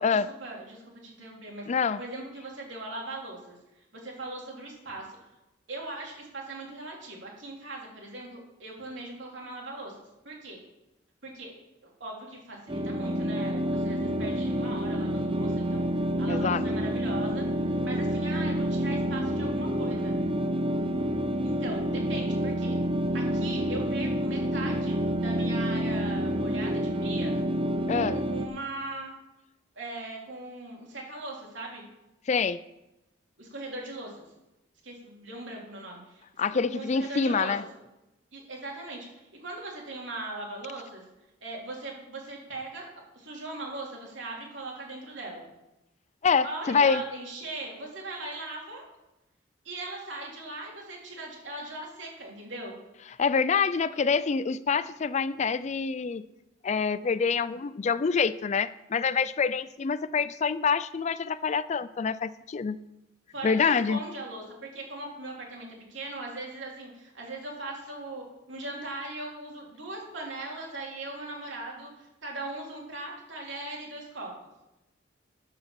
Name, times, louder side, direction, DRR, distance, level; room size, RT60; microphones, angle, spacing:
voice 1, 0.0-3.6 4.0-5.2 5.7-10.0 10.2-10.6 11.2-11.6 11.8-15.9 16.2-20.1 21.4-22.8 23.1-27.4 27.9-29.1 29.7-31.9 33.4-34.3 34.8-36.2 36.7-37.5 38.3-41.0 41.4-42.9 43.1-45.5 46.4-48.8 49.6-52.8 63.3-74.3, right 2 dB, 75° right, -1 dB, 3.2 m, -39 dB
voice 2, 1.7-2.0 16.3-16.6 27.9-28.2 32.3-32.6 36.4-37.6 46.2-47.0 53.2-56.2 56.6-62.8 63.4-64.0, left 5 dB, 35° left, 16 dB, 0.4 m, -26 dB
sound 1, 12.7-28.5, equal, 25° right, 0.8 m, -28 dB
12.0 x 5.8 x 7.1 m, 0.94 s
head